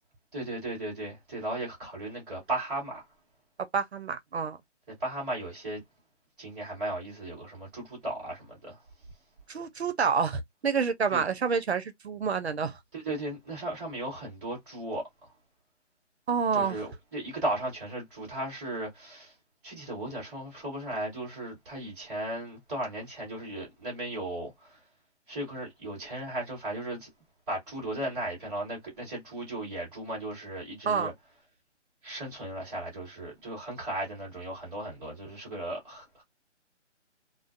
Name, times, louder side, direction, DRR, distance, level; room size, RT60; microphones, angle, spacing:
voice 1, 0.3-3.0 5.0-5.8 6.4-8.8 11.1-11.2 12.9-15.0 16.5-19.3 19.6-24.8 25.3-27.1 27.5-31.1 32.0-36.2, right 1 dB, 5° right, 0.6 m, -36 dB
voice 2, 3.7-4.6 9.5-12.8 16.3-16.8 30.9-31.1, right 6 dB, 60° right, 0.6 m, -28 dB
2.4 x 2.2 x 2.4 m
figure-of-eight pair, 155°, 36 cm